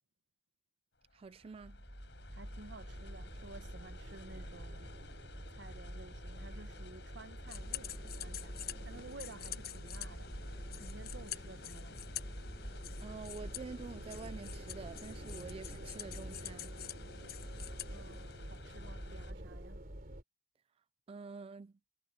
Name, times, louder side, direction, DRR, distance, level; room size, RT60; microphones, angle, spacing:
sound 1, 1.0-19.3, left 2 dB, 70° left, 7.5 m, -54 dB
voice 1, 1.1-1.8 13.0-16.7 21.1-21.8, right 4 dB, 35° right, 0.3 m, -47 dB
sound 2, 1.6-20.2, right 1 dB, 55° right, 3.2 m, -47 dB
voice 2, 2.3-4.9 5.5-12.0 17.9-19.9, right 3 dB, 80° right, 1.1 m, -54 dB
sound 3, 7.5-18.7, left 11 dB, 55° left, 1.1 m, -48 dB
head